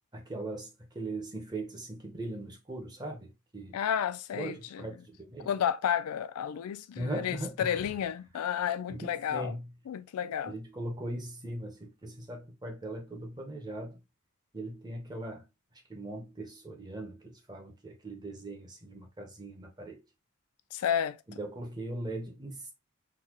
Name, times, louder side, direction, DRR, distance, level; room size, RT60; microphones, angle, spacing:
voice 1, 0.1-3.8 4.3-5.5 7.0-7.9 8.9-9.7 10.5-14.0 14.5-15.4 15.9-20.0 21.3-22.7, right 1 dB, 20° right, 0.8 m, -39 dB
voice 2, 3.7-4.8 5.4-9.5 9.9-10.5 20.7-21.2, left 9 dB, 85° left, 0.3 m, -31 dB
3.9 x 2.2 x 2.9 m
head